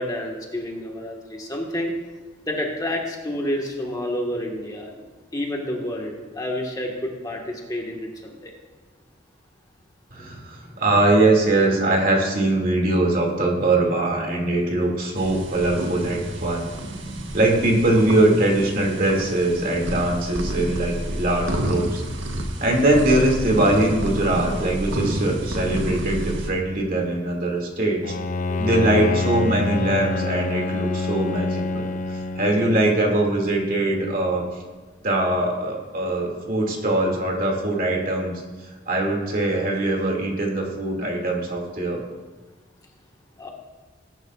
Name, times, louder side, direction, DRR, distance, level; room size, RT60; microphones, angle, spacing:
voice 1, 0.0-1.9 2.4-5.0 5.3-8.5 28.5-28.8 43.4-43.5, left 1 dB, 20° left, 0 dB, 1.5 m, -29 dB
voice 2, 10.1-16.7 17.3-22.0 22.6-28.0 28.6-31.9 32.4-34.4 35.0-38.4 38.9-42.0, right 2 dB, 50° right, 0 dB, 2.4 m, -22 dB
sound 1, 15.2-26.5, right 1 dB, 80° right, 1.4 m, -29 dB
Bowed string instrument, 28.0-33.4, left 3 dB, 40° left, 0.5 m, -27 dB
20.5 x 10.5 x 2.4 m, 1.3 s
head